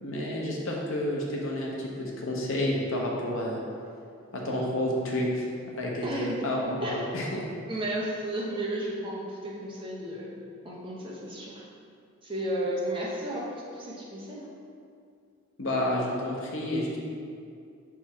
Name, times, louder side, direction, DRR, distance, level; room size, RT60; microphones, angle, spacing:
voice 1, 0.0-3.6 4.3-5.5 5.8-7.4 15.6-17.0, left 1 dB, 65° left, -3 dB, 1.0 m, -30 dB
voice 2, 6.0-6.5 6.8-7.0 7.7-10.3 10.6-11.6 12.2-14.5, right 1 dB, 25° right, -5 dB, 0.8 m, -33 dB
6.0 x 3.6 x 4.5 m, 2.4 s
head